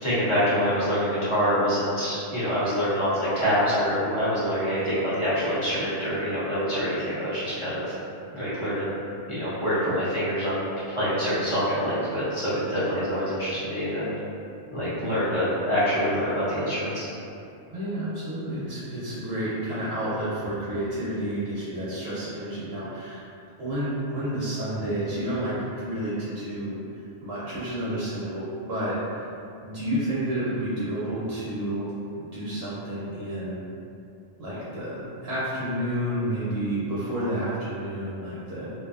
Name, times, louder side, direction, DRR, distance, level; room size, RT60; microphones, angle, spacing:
voice 1, 0.0-7.9 8.3-8.9 9.3-10.6 10.9-14.1 14.7-17.1, equal, 30° left, -12 dB, 0.6 m, -25 dB
voice 2, 17.7-23.2 23.6-29.3 29.6-31.9 32.2-33.6 34.4-38.7, right 1 dB, 65° right, -9 dB, 0.8 m, -30 dB
2.6 x 2.3 x 2.3 m, 2.6 s
omnidirectional pair, 1.2 m